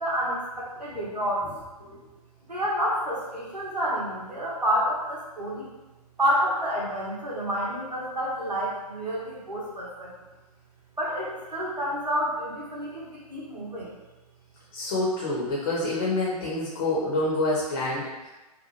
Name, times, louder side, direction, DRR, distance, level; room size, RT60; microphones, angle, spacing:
voice 1, 0.0-1.5 2.5-5.7 6.2-10.1 11.0-13.9, equal, 85° right, -5 dB, 0.9 m, -29 dB
voice 2, 14.7-18.3, left 2 dB, 40° left, -6 dB, 0.7 m, -27 dB
2.7 x 2.1 x 2.9 m, 1.1 s
figure-of-eight pair, 120°, 20 cm